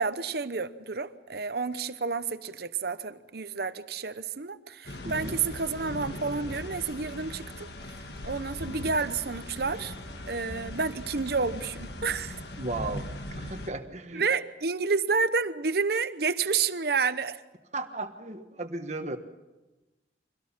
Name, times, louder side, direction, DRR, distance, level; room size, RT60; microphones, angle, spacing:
voice 1, 0.0-7.7 8.2-10.0 10.3-12.4 14.1-17.4, right 4 dB, 60° right, 0.9 m, -30 dB
sound 1, 4.8-13.7, left 1 dB, 65° left, 1.7 m, -39 dB
voice 2, 5.0-5.3 12.6-14.3 17.7-19.2, right 2 dB, 40° right, 1.4 m, -35 dB
24.5 x 17.5 x 7.3 m
head